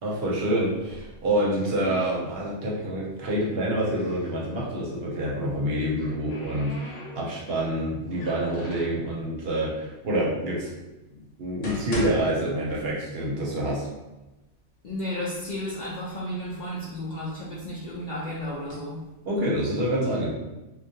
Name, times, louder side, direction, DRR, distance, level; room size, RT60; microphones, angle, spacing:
voice 1, 0.0-10.7 11.2-13.9 19.3-20.3, right 1 dB, 65° right, -4 dB, 0.8 m, -27 dB
sound 1, 0.8-2.7 3.0-4.4 5.5-7.5 8.1-9.0 9.8-9.9 10.6-10.7 11.3-13.3 13.6-13.7 14.4-14.5 14.9-15.5 16.1-17.8 18.4-18.7, equal, 85° left, 1.0 m, -40 dB
voice 2, 14.8-19.0, left 1 dB, 65° left, -7 dB, 0.4 m, -33 dB
2.3 x 2.2 x 2.7 m, 1.0 s
omnidirectional pair, 1.2 m